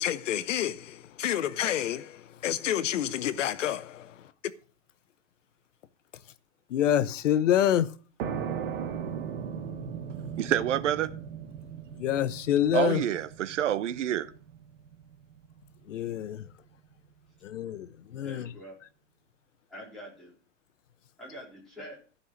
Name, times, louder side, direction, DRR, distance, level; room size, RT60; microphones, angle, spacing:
voice 1, 0.0-4.3 6.7-7.9 12.0-13.0 15.9-16.5 17.4-18.5, left 11 dB, 85° left, 1.0 m, -28 dB
sound 1, 8.2-15.6, right 7 dB, 50° right, 1.5 m, -37 dB
voice 2, 10.4-11.1 12.7-14.3, right 11 dB, 75° right, 0.9 m, -27 dB
voice 3, 18.2-18.8 19.7-20.3 21.2-22.0, equal, ahead, 4.1 m, -45 dB
14.5 x 5.7 x 6.3 m
supercardioid pair, 170°, 36 cm